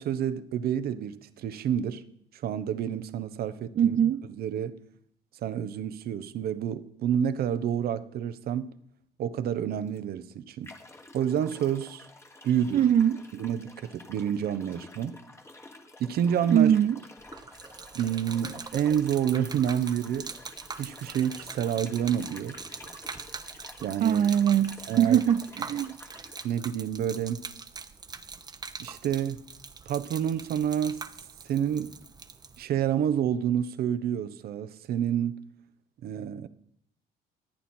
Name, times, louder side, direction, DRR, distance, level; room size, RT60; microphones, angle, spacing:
voice 1, 0.0-2.0 2.3-4.0 4.3-4.7 5.4-8.7 9.2-10.7 11.1-12.1 12.4-12.8 13.3-15.2 16.0-16.8 17.9-20.3 20.8-22.6 23.8-24.2 24.9-25.2 26.4-27.4 28.8-29.4 29.9-31.0 31.5-31.9 32.6-35.4 36.0-36.5, right 9 dB, 65° right, 1.1 m, -29 dB
voice 2, 3.8-4.2 12.7-13.2 16.5-17.0 24.0-26.0, right 9 dB, 45° right, 0.5 m, -22 dB
sound 1, 9.9-10.0 10.6-26.6, left 2 dB, 15° left, 1.6 m, -50 dB
Gurgling / Liquid, 17.2-32.6, right 4 dB, 25° right, 1.1 m, -43 dB
26.0 x 9.1 x 4.5 m
cardioid pair, 110°, 17 cm